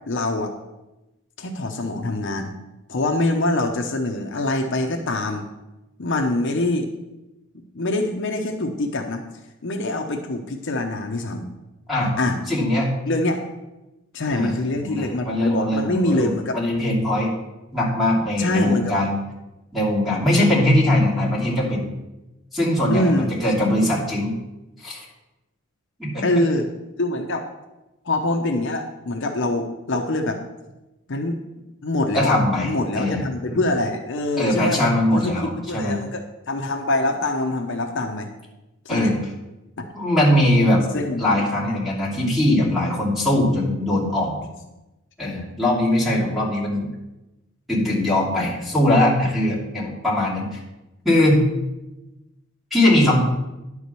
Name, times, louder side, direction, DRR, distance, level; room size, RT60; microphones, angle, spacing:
voice 1, 0.1-0.5 1.4-2.5 2.9-5.5 6.0-6.9 7.7-9.2 9.6-11.4 12.2-12.4 13.1-13.4 14.1-16.6 18.4-18.9 22.9-23.4 23.6-23.9 26.2-26.7 27.0-27.5 28.0-30.4 31.1-31.4 31.8-38.3 38.9-39.1 39.8-39.9 40.9-41.8, left 2 dB, 60° left, 3 dB, 0.8 m, -24 dB
voice 2, 12.5-12.9 14.3-14.5 14.8-17.3 17.7-19.2 19.7-21.9 22.5-24.3 24.8-25.0 26.0-26.2 32.1-32.7 33.0-33.2 33.5-33.6 34.4-36.0 38.9-39.2 39.9-40.8 41.2-44.5 45.2-46.9 47.7-50.6 51.0-51.4 52.7-53.2, left 1 dB, ahead, -6 dB, 2.8 m, -21 dB
10.5 x 4.8 x 6.8 m, 1.0 s
head